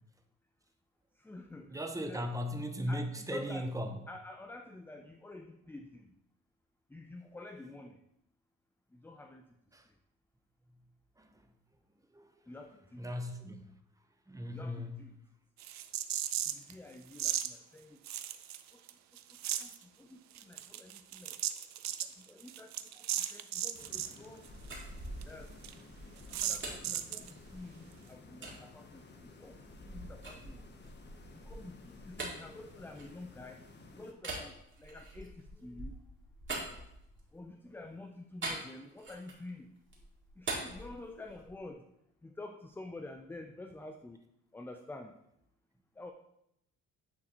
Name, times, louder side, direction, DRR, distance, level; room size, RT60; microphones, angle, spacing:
voice 1, 1.2-2.4 2.9-3.7 4.1-6.1 6.9-8.0 8.9-9.5 9.9-10.0 12.5-13.3 14.5-15.2 16.4-18.0 18.7-18.8 19.3-21.4 22.0-24.5 25.2-25.9 26.3-30.7 31.3-36.0 37.3-39.7 40.4-41.8 42.2-44.2 44.5-45.2 45.9-46.1, left 2 dB, 5° left, 5 dB, 0.4 m, -49 dB
voice 2, 1.7-3.9 9.7-9.8 11.2-11.3 12.1-12.3 13.0-13.7 14.3-15.0, equal, 10° right, 6 dB, 0.7 m, -37 dB
sound 1, 15.6-16.7 17.1-17.5 18.1-18.9 19.2-19.8 20.3-24.2 24.4-24.5 24.8-24.9 25.2-25.3 25.6-25.7 26.3-27.3, right 12 dB, 65° right, 0.5 m, -36 dB
sound 2, 23.7-34.1, left 3 dB, 35° left, 0.9 m, -55 dB
sound 3, 24.3-27.8 28.4-28.6 29.2-33.6 34.2-37.4 38.4-39.5 39.8-41.6, right 2 dB, 40° right, 2.0 m, -44 dB
9.4 x 3.8 x 2.9 m, 0.79 s
cardioid pair, 90°, 30 cm